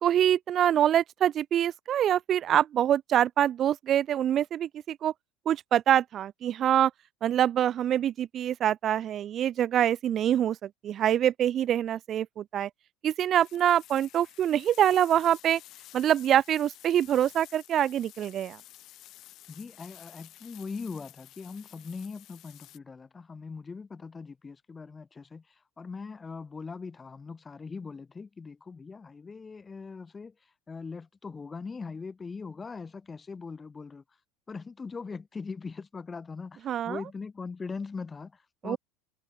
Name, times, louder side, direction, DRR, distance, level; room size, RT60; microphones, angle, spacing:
voice 1, 0.0-5.1 5.5-6.9 7.2-12.7 13.0-15.6 15.9-18.6 36.7-37.0 38.6-38.8, right 10 dB, 40° right, 0.9 m, -25 dB
sound 1, 13.3-22.8, left 15 dB, 50° left, 6.7 m, -52 dB
voice 2, 19.5-30.3 30.7-34.0 34.5-38.8, left 4 dB, 20° left, 1.4 m, -41 dB
supercardioid pair, 100°, 0 cm